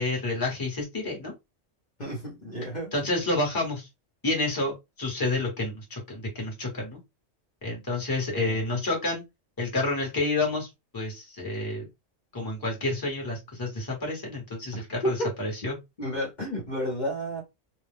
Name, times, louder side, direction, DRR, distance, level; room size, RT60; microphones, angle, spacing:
voice 1, 0.0-1.3 2.9-3.9 4.2-4.7 5.0-7.0 7.6-9.2 9.6-10.7 10.9-11.9 12.3-15.8, left 2 dB, 20° left, 1.1 m, -29 dB
voice 2, 2.0-2.9 8.4-8.8 14.7-15.3 16.0-17.4, equal, 40° left, 1.0 m, -32 dB
2.6 x 2.2 x 3.4 m
omnidirectional pair, 1.3 m